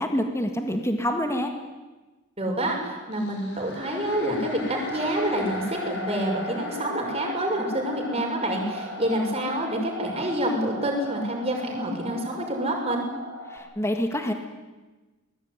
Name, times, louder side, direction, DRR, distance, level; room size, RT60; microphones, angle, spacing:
voice 1, 0.0-1.5 13.5-14.3, equal, 10° left, 5 dB, 1.8 m, -26 dB
voice 2, 2.4-13.0, right 1 dB, 30° right, 1 dB, 6.4 m, -27 dB
sound 1, 3.1-13.6, left 1 dB, 55° left, 6.2 m, -37 dB
24.0 x 20.0 x 9.8 m, 1.2 s
head